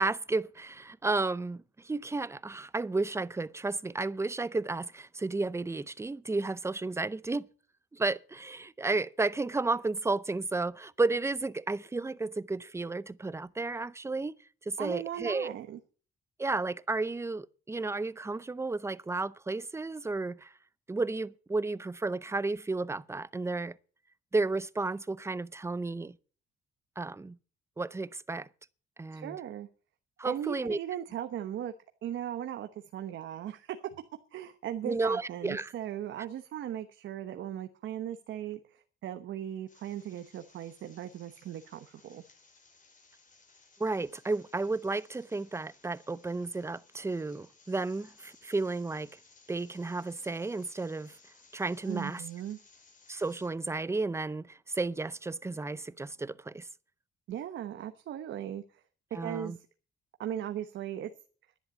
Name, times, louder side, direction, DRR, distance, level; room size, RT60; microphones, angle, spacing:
voice 1, 0.0-7.5 7.9-14.3 14.7-15.5 16.4-20.5 20.9-23.8 24.3-26.2 27.0-27.4 27.8-28.5 29.0-29.4 30.2-30.8 34.8-35.7 43.8-49.1 49.5-51.1 51.5-52.2 53.1-56.7 59.1-59.6, right 3 dB, 15° right, 0.6 m, -32 dB
voice 2, 14.8-15.8 29.1-29.7 30.2-31.7 32.0-34.0 34.3-42.2 51.9-52.6 57.3-58.8 59.2-59.7 60.2-61.1, right 11 dB, 75° right, 1.1 m, -38 dB
sound 1, 39.7-53.5, left 4 dB, 40° left, 5.1 m, -61 dB
11.0 x 10.5 x 7.1 m
cardioid pair, 90°, 20 cm